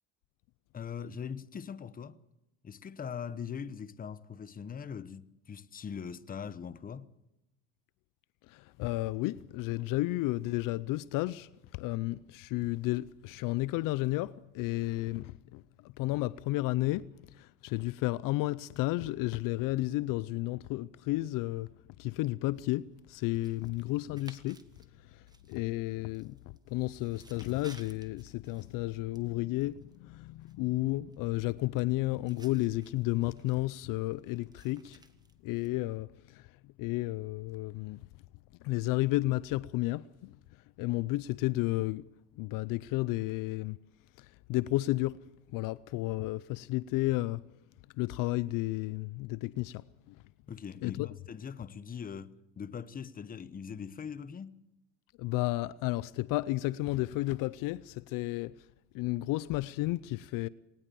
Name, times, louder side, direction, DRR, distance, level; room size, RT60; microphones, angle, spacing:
voice 1, 0.7-2.2 2.6-7.1 50.5-54.7, left 7 dB, 25° left, 0.9 m, -41 dB
voice 2, 8.5-17.1 17.3-21.7 22.0-24.6 25.1-26.4 26.7-35.0 35.4-36.5 36.8-38.0 38.6-40.3 40.8-42.1 42.4-43.8 44.2-45.2 45.5-47.4 48.0-50.2 50.8-51.1 55.2-58.5 58.9-60.5, left 18 dB, 65° left, 0.6 m, -32 dB
sound 1, 22.5-35.7, right 2 dB, 10° right, 1.5 m, -61 dB
20.0 x 19.0 x 6.9 m
supercardioid pair, 110°, 36 cm